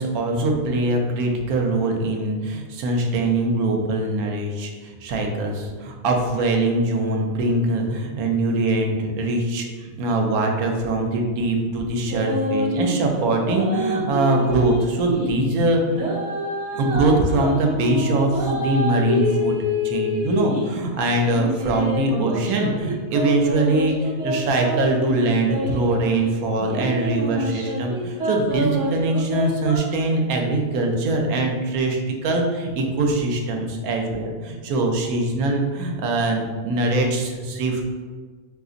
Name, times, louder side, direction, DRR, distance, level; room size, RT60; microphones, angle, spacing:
voice 1, 0.0-16.0 16.7-19.6 19.8-37.8, right 2 dB, 85° right, 2 dB, 1.0 m, -22 dB
sound 1, 12.1-13.0 13.4-15.3 15.9-20.7 21.3-26.1 26.6-29.8, equal, 60° right, 1.0 m, -26 dB
2.6 x 2.4 x 3.8 m, 1.5 s
omnidirectional pair, 1.5 m